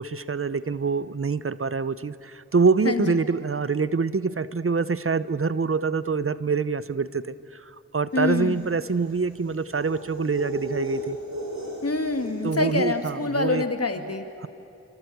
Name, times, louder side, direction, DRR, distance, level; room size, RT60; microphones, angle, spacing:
voice 1, 0.0-7.6 7.9-11.2 12.4-13.6 14.4-14.5, right 4 dB, 50° right, 15 dB, 0.8 m, -25 dB
voice 2, 2.9-3.2 8.1-8.7 11.8-14.3, left 3 dB, 55° left, 7 dB, 2.1 m, -26 dB
sound 1, 8.2-12.8, equal, 70° right, 7.6 m, -36 dB
27.5 x 25.0 x 8.1 m, 2.9 s
wide cardioid pair, 50°, 29 cm